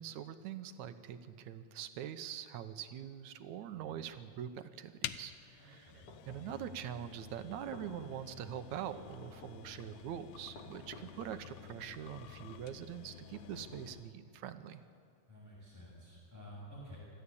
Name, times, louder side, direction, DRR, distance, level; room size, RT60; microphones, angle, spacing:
voice 1, 0.0-14.8, right 10 dB, 80° right, 10 dB, 2.3 m, -44 dB
sound 1, 5.0-14.2, left 12 dB, 85° left, 2.1 m, -50 dB
voice 2, 5.6-6.1 15.3-17.0, equal, 5° right, -7 dB, 6.6 m, -52 dB
sound 2, 6.1-6.8 7.5-8.2 9.0-9.7 10.5-11.3 12.0-12.6 13.3-14.2, left 2 dB, 50° left, 3.7 m, -54 dB
26.0 x 14.5 x 8.5 m, 2.5 s
omnidirectional pair, 3.3 m